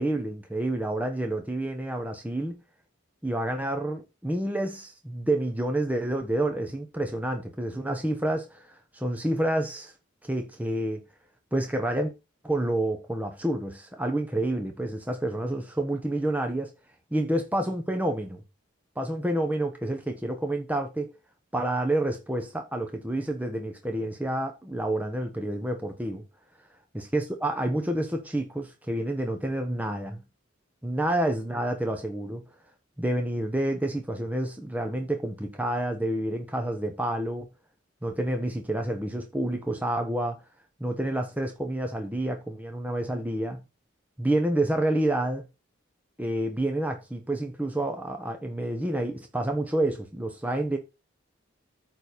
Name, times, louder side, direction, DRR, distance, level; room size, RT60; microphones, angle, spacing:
voice 1, 0.0-2.6 3.2-8.7 8.9-9.9 10.2-11.0 11.5-12.1 12.4-16.7 17.1-18.4 19.0-21.1 21.5-26.2 26.9-30.2 30.8-32.4 33.0-37.5 38.0-40.4 40.8-43.6 44.2-45.4 46.2-50.8, right 1 dB, 10° right, 1.0 m, -29 dB
9.0 x 4.1 x 6.8 m
head